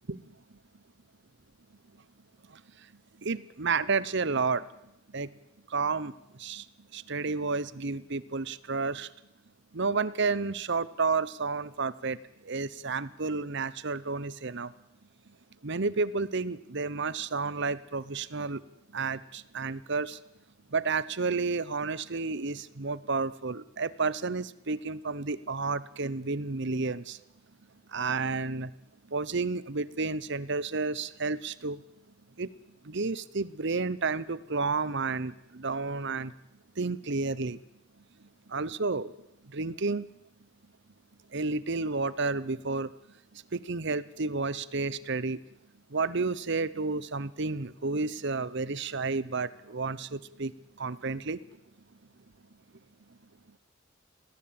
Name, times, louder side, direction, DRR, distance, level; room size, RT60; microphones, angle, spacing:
voice 1, 3.2-4.6 5.1-5.3 5.7-6.1 6.4-6.6 6.9-9.1 9.7-12.2 12.5-14.7 15.6-18.6 18.9-20.2 20.7-27.2 27.9-28.7 29.1-31.8 32.4-32.5 32.9-36.3 36.8-37.6 38.5-39.1 39.5-40.1 41.3-42.9 43.5-45.4 45.9-50.5 50.8-51.4, right 4 dB, 60° right, 18 dB, 0.9 m, -31 dB
20.5 x 17.0 x 8.9 m, 0.82 s
head